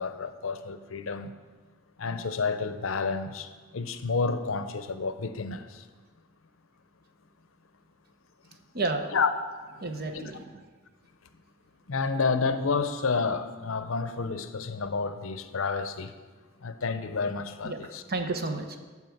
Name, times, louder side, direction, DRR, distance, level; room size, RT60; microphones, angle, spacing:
voice 1, 0.0-1.3 2.0-5.9 9.1-9.7 10.1-10.2 11.9-16.1 16.6-18.0, left 4 dB, 85° left, 0.7 m, -30 dB
voice 2, 8.7-9.1 9.8-10.6 17.6-18.8, right 3 dB, 50° right, 0.9 m, -32 dB
11.0 x 4.7 x 7.2 m
head